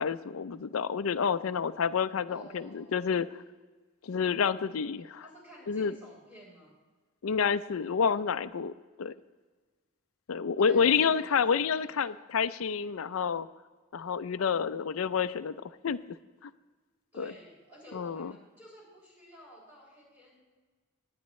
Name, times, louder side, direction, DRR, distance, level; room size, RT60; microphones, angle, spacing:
voice 1, 0.0-3.4 4.0-5.2 5.7-5.9 7.2-8.7 9.0-9.1 10.3-13.5 13.9-15.6 15.8-16.0 16.4-16.5 17.2-17.3 17.9-18.3, left 6 dB, 80° left, 14 dB, 0.5 m, -29 dB
voice 2, 2.3-3.1 5.2-6.7 10.6-12.0 17.1-20.4, equal, 10° right, -5 dB, 4.2 m, -53 dB
20.0 x 9.6 x 3.2 m, 1.4 s
head